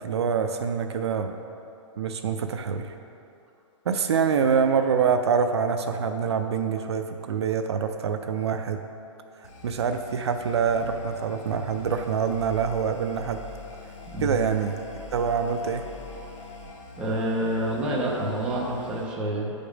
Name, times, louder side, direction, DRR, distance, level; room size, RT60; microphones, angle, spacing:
voice 1, 0.0-1.3 2.0-2.9 3.9-8.8 9.6-13.4 14.2-14.7 15.1-15.9, right 6 dB, 55° right, 7 dB, 0.5 m, -25 dB
sound 1, 9.4-19.0, left 3 dB, 70° left, 1.8 m, -43 dB
voice 2, 17.0-19.5, right 1 dB, 5° right, -4 dB, 0.6 m, -27 dB
9.4 x 5.2 x 5.0 m, 2.7 s
hypercardioid pair, 175°, 17 cm